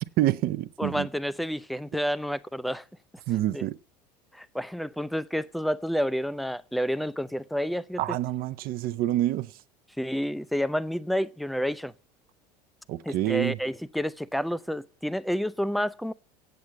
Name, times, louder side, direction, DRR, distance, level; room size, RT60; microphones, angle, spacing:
voice 1, 0.2-1.1 3.3-3.8 8.0-9.5 12.9-13.6, right 14 dB, 45° right, 0.6 m, -27 dB
voice 2, 0.8-2.8 3.5-3.6 4.3-8.0 10.0-11.9 13.1-16.1, equal, ahead, 0.4 m, -29 dB
8.3 x 8.2 x 8.2 m
figure-of-eight pair, 70°, 21 cm